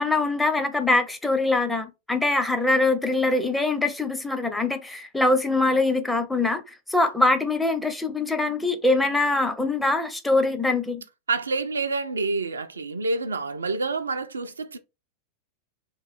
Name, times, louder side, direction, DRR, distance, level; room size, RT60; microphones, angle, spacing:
voice 1, 0.0-6.6 6.9-11.0, left 2 dB, 5° left, 0.5 m, -23 dB
voice 2, 11.3-14.8, right 3 dB, 75° right, 0.3 m, -28 dB
3.0 x 2.3 x 4.1 m
figure-of-eight pair, 90°, 0 cm